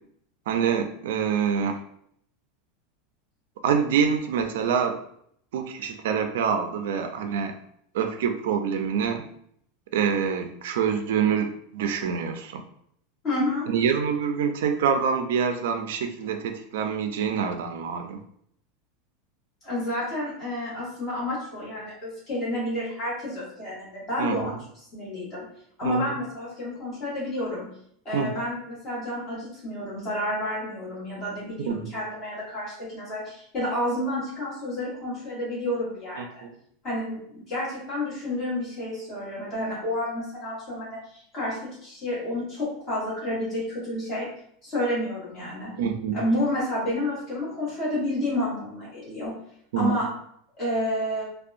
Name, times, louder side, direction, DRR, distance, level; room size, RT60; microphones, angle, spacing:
voice 1, 0.5-1.8 3.6-5.0 5.5-7.6 7.9-9.3 9.9-12.6 13.7-18.2 24.2-24.6 25.8-26.1 28.1-28.3 31.7-31.9 36.2-36.5 45.8-46.2 49.7-50.0, right 7 dB, 75° right, 6 dB, 0.3 m, -26 dB
voice 2, 13.2-13.7 19.6-24.5 24.9-25.5 25.8-27.8 28.0-36.4 36.8-44.3 44.6-45.8 46.1-49.4 49.8-50.1 50.6-51.2, left 1 dB, 20° left, -9 dB, 1.3 m, -30 dB
2.6 x 2.1 x 2.5 m, 0.67 s
supercardioid pair, 175°, 0 cm